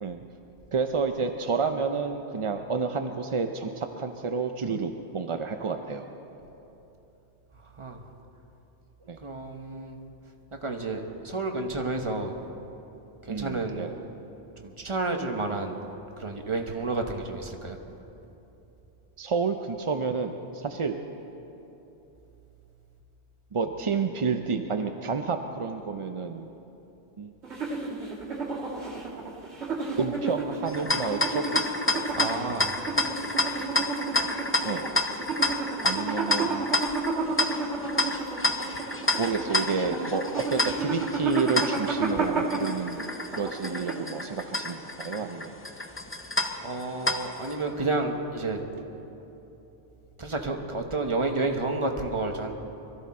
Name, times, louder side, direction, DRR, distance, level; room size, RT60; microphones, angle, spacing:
voice 1, 0.7-6.1 9.1-9.2 13.3-14.0 19.2-21.0 23.5-26.5 27.2-27.3 30.0-31.5 34.6-34.9 35.8-36.7 39.2-43.0 43.3-45.6, right 5 dB, 45° right, 6 dB, 0.4 m, -30 dB
voice 2, 9.2-10.0 10.6-12.4 13.2-13.9 14.6-15.7 16.2-17.8 32.1-32.8 46.6-48.6 50.2-52.5, right 2 dB, 30° right, 3 dB, 1.0 m, -30 dB
sound 1, 27.4-44.3, right 3 dB, 70° right, 2.1 m, -31 dB
sound 2, 30.7-47.5, left 2 dB, 15° left, 0.5 m, -30 dB
22.5 x 13.5 x 4.2 m, 3.0 s
omnidirectional pair, 1.2 m